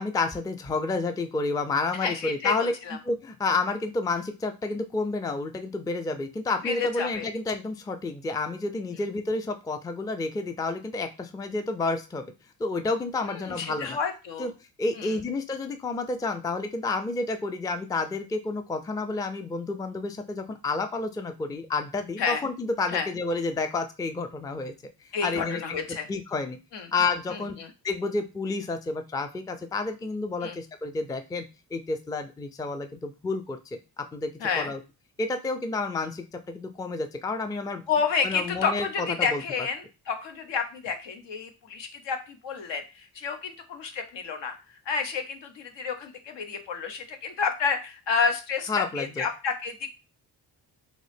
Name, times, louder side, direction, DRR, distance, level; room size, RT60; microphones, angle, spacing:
voice 1, 0.0-2.7 3.0-12.2 12.6-14.0 14.4-14.5 14.8-24.7 25.2-25.8 26.1-26.6 26.9-27.6 27.8-31.4 31.7-34.8 35.2-37.8 38.2-38.9 39.2-39.4 48.7-49.3, left 3 dB, 10° left, 8 dB, 0.3 m, -30 dB
voice 2, 2.0-3.0 6.6-7.3 13.3-14.5 15.0-15.2 22.2-22.4 22.9-23.1 25.1-26.1 26.7-26.9 27.3-27.7 30.4-30.6 34.4-34.7 37.9-44.5 44.9-49.9, left 5 dB, 75° left, 6 dB, 0.8 m, -30 dB
3.7 x 2.0 x 3.3 m, 0.29 s
supercardioid pair, 55°, 44 cm